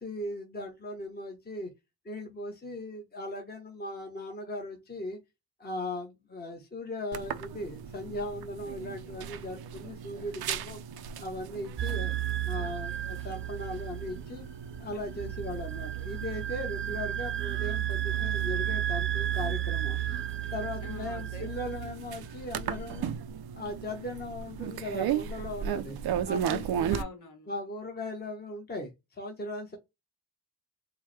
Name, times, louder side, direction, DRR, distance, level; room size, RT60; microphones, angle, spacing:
voice 1, 0.0-1.7 2.0-5.2 5.6-10.8 11.2-12.1 12.4-14.4 14.8-20.2 20.5-23.1 23.6-26.0 26.3-27.0 27.5-29.8, left 1 dB, 25° left, 1.0 m, -38 dB
sound 1, 7.1-27.0, right 9 dB, 85° right, 0.5 m, -37 dB
sound 2, 11.8-23.0, right 11 dB, 35° right, 0.5 m, -33 dB
voice 2, 20.8-21.4 26.9-27.5, left 5 dB, 55° left, 1.6 m, -44 dB
4.5 x 2.1 x 3.2 m
cardioid pair, 105°, 36 cm